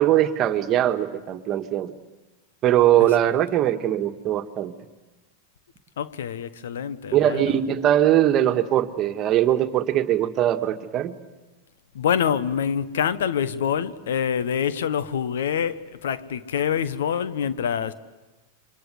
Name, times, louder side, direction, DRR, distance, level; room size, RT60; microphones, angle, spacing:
voice 1, 0.0-1.9 2.6-4.7 7.1-11.1, right 12 dB, 35° right, 1.7 m, -21 dB
voice 2, 6.0-7.6 11.9-17.9, left 8 dB, 70° left, 1.2 m, -26 dB
28.5 x 25.0 x 8.2 m
hypercardioid pair, 95°, 0 cm